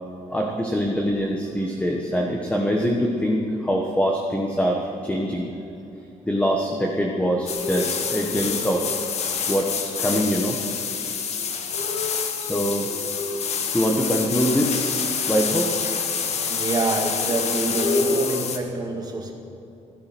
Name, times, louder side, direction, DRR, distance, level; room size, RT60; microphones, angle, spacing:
voice 1, 0.3-5.5 6.2-8.9 9.5-10.6 12.4-12.9 13.7-15.7, equal, 10° left, 0 dB, 1.3 m, -24 dB
sound 1, 7.5-18.6, left 6 dB, 55° left, 1.4 m, -27 dB
voice 2, 16.5-19.3, right 2 dB, 30° right, 1 dB, 2.1 m, -26 dB
16.5 x 12.5 x 6.1 m, 2.8 s
cardioid pair, 155°, 13 cm